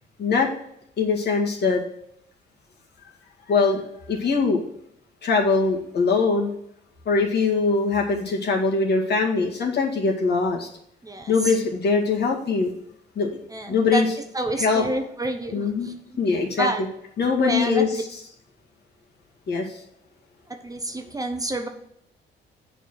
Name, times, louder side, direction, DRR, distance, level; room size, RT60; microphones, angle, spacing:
voice 1, 0.2-0.5 1.0-1.8 3.5-3.8 4.1-4.6 5.2-6.5 7.1-10.7 11.3-12.7 13.2-13.4 13.7-14.1 14.6-14.9 15.5-16.7 17.2-18.0 19.5-19.8, left 4 dB, 55° left, 0 dB, 2.1 m, -22 dB
voice 2, 11.0-11.6 13.5-14.0 14.3-15.9 16.6-16.8 17.4-18.0 20.5-21.7, right 2 dB, 15° right, 6 dB, 0.9 m, -28 dB
7.9 x 4.7 x 6.3 m, 0.75 s
cardioid pair, 90°, 20 cm